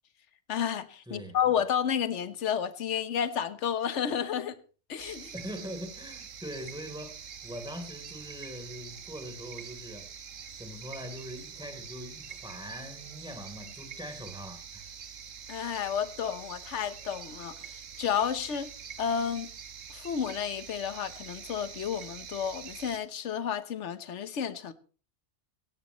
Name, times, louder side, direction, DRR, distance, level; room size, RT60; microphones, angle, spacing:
voice 1, 0.5-4.6 4.9-5.3 15.5-17.5 18.0-18.7 19.0-19.5 19.9-24.7, left 8 dB, 70° left, 1.3 m, -31 dB
voice 2, 1.1-1.4 5.3-10.1 10.6-14.9, equal, 5° right, 3.4 m, -42 dB
sound 1, 5.0-23.0, right 7 dB, 90° right, 1.5 m, -45 dB
17.0 x 17.0 x 3.1 m
omnidirectional pair, 1.3 m